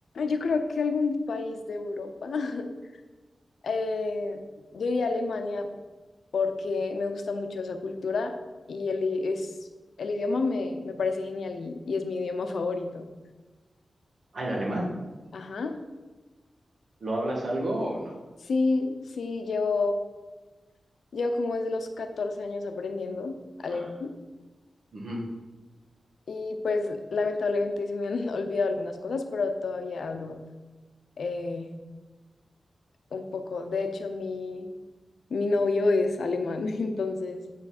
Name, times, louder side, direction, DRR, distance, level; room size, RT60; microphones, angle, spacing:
voice 1, 0.1-2.7 3.6-4.4 4.7-5.7 6.3-8.3 8.7-9.5 10.0-13.1 15.3-15.8 18.4-20.0 21.1-24.1 26.3-30.4 31.2-31.7 33.1-34.7 35.3-37.5, left 3 dB, 75° left, 6 dB, 0.8 m, -29 dB
voice 2, 14.3-14.9 17.0-18.1 23.7-23.9 24.9-25.2, right 1 dB, 45° right, -2 dB, 2.0 m, -30 dB
8.4 x 7.3 x 4.3 m, 1.2 s
wide cardioid pair, 155°, 0 cm